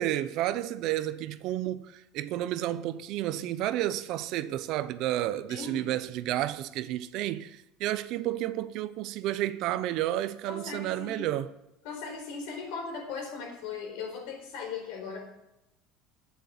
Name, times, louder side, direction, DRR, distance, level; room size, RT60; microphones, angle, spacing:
voice 1, 0.0-11.5, right 13 dB, 50° right, 0.6 m, -31 dB
voice 2, 5.5-5.9 10.5-11.3 11.8-15.2, left 5 dB, 70° left, 4.2 m, -38 dB
9.5 x 7.8 x 9.2 m
cardioid pair, 160°, 0 cm